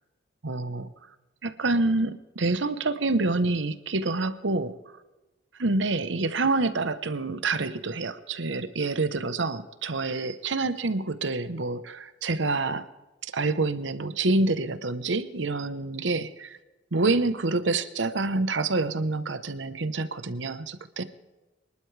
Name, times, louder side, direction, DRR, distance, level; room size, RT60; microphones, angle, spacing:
voice 1, 0.4-0.9 1.4-4.8 5.6-12.9 13.3-16.6 16.9-21.0, right 3 dB, 80° right, 12 dB, 1.0 m, -27 dB
25.5 x 11.5 x 3.3 m, 1.1 s
head